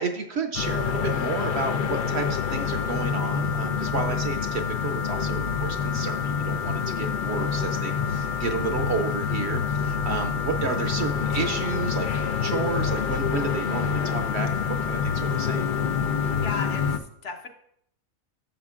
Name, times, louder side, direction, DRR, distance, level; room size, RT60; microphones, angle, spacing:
voice 1, 0.0-15.7, right 4 dB, 60° right, 6 dB, 0.8 m, -31 dB
sound 1, 0.5-17.0, left 6 dB, 80° left, 0.4 m, -27 dB
voice 2, 16.4-17.5, left 4 dB, 60° left, 4 dB, 1.1 m, -35 dB
13.0 x 7.2 x 2.4 m, 0.72 s
omnidirectional pair, 1.5 m